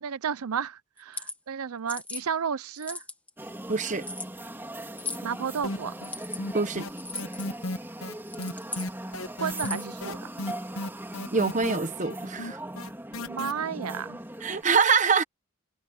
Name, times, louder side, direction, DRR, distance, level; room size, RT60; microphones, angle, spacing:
voice 1, 0.0-3.0 5.2-5.9 9.4-10.3 13.3-14.2, right 7 dB, 85° right, 0.6 m, -32 dB
sound 1, 1.0-1.4 1.9-2.2 2.8-3.3 4.0-4.3 5.0-5.3 6.0-6.4 7.0-7.5 8.2-8.9 9.5-9.9, left 3 dB, 5° left, 1.3 m, -37 dB
sound 2, 3.4-14.6, right 1 dB, 10° right, 3.2 m, -40 dB
voice 2, 3.7-4.1 6.5-6.9 11.3-12.6 14.4-15.2, right 5 dB, 35° right, 1.1 m, -24 dB
sound 3, 5.6-6.1 6.4-13.5, left 2 dB, 70° left, 1.1 m, -34 dB
head